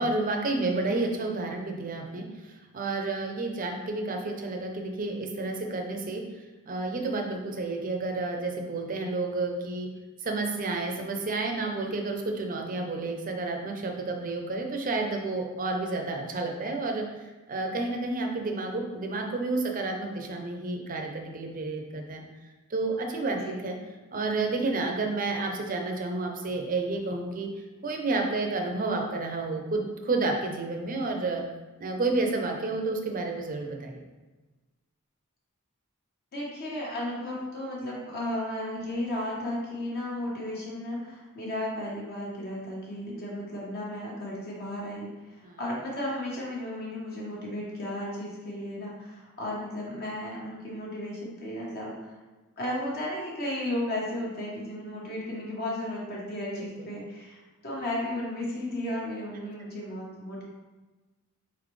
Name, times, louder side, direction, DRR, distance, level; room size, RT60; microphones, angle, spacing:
voice 1, 0.0-6.2 6.7-9.9 10.2-17.0 17.5-22.2 22.7-23.7 24.1-27.5 27.8-31.4 31.8-34.1 45.4-45.6 56.5-56.7, right 3 dB, 40° right, 3 dB, 0.6 m, -30 dB
voice 2, 36.3-52.1 52.6-60.4, left 1 dB, 50° left, -4 dB, 1.1 m, -34 dB
4.1 x 4.0 x 3.2 m, 1.2 s
head